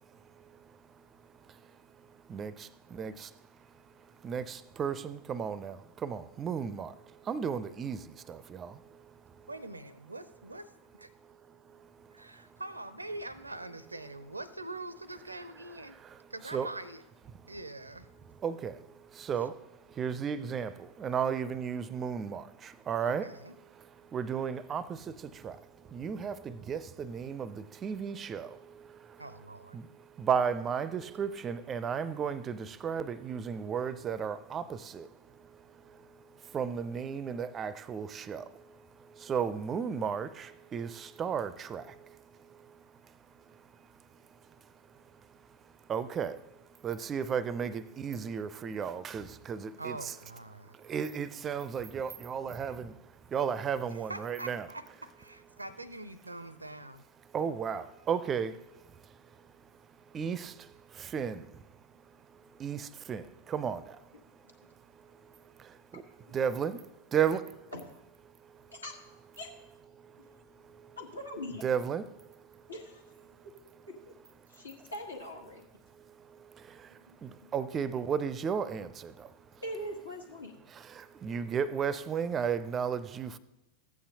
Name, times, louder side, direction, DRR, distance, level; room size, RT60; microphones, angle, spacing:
voice 1, 2.9-3.3 4.2-5.8 6.0-6.9 7.3-8.0 8.3-8.7 16.4-16.7 18.4-18.7 19.2-19.5 20.0-20.7 21.0-22.4 22.9-23.3 24.1-24.8 25.4-25.6 25.9-28.5 29.7-29.8 30.2-35.1 36.5-38.4 39.3-41.8 45.9-46.4 46.8-50.1 50.9-52.9 53.3-54.7 57.3-58.5 60.1-60.5 61.1-61.4 62.6-63.2 63.5-63.8 65.9-66.0 66.3-66.8 67.1-67.4 71.6-72.0 77.2-79.1 81.2-83.4, right 7 dB, 25° right, 0.4 m, -33 dB
voice 2, 9.5-10.7 12.1-16.0 16.3-17.0 17.5-18.1 23.0-23.5 29.2-29.8 49.8-50.8 54.1-57.0, right 2 dB, 85° right, 0.5 m, -43 dB
voice 3, 71.0-71.6 72.7-73.0 73.9-74.1 74.5-75.7 76.9-77.5 79.6-80.6, equal, 80° left, 1.4 m, -42 dB
14.5 x 8.5 x 2.8 m
figure-of-eight pair, 90°, 0 cm